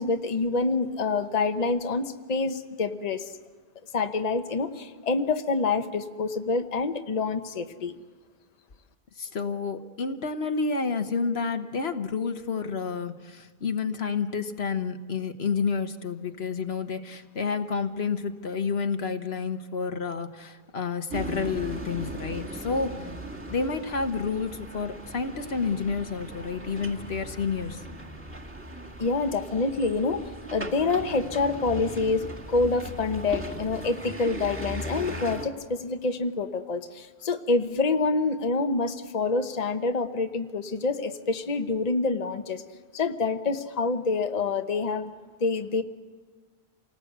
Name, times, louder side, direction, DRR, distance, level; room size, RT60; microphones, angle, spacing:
voice 1, 0.0-3.3 3.9-7.9 29.0-30.2 30.5-42.6 42.9-45.1 45.4-45.8, left 3 dB, 40° left, 7 dB, 1.0 m, -27 dB
voice 2, 9.2-23.1 23.5-27.8, left 5 dB, 75° left, 8 dB, 1.4 m, -30 dB
sound 1, 21.1-35.5, right 1 dB, 10° right, 2.3 m, -38 dB
28.0 x 19.0 x 8.0 m, 1.4 s
omnidirectional pair, 1.1 m